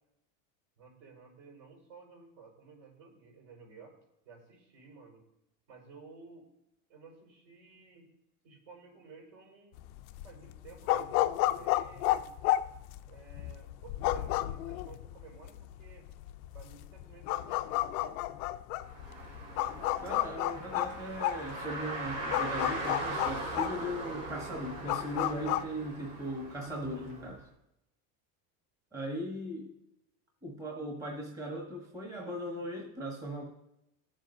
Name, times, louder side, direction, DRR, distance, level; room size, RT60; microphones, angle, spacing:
voice 1, 0.8-3.9 4.2-5.2 5.7-6.5 6.9-8.1 8.4-9.8 10.2-12.3 13.1-16.1 16.5-18.2, right 4 dB, 65° right, -1 dB, 4.7 m, -54 dB
sound 1, 9.8-25.6, left 15 dB, 75° left, 0.6 m, -32 dB
Car, 18.8-27.4, right 2 dB, 85° right, 3.5 m, -40 dB
voice 2, 20.0-27.5 28.9-29.7 30.4-33.5, equal, 5° right, -1 dB, 1.1 m, -38 dB
20.5 x 7.5 x 2.6 m, 0.87 s
supercardioid pair, 160°, 45 cm